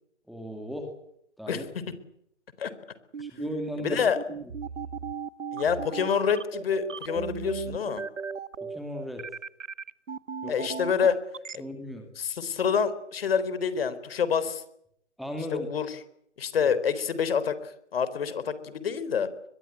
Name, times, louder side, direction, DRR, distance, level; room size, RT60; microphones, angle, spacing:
voice 1, 0.3-0.9 1.4-1.7 3.2-4.0 4.3-4.4 8.6-9.2 10.4-10.6 11.6-12.1 15.2-15.7, left 1 dB, ahead, 4 dB, 2.3 m, -36 dB
sound 1, 3.1-11.6, right 5 dB, 80° right, 1.5 m, -36 dB
voice 2, 3.8-4.2 5.5-8.0 10.5-11.2 11.5-11.6 12.2-14.6 15.5-15.9 16.4-19.3, left 7 dB, 50° left, 14 dB, 3.9 m, -27 dB
24.0 x 22.0 x 9.7 m, 0.72 s
hypercardioid pair, 150°, 37 cm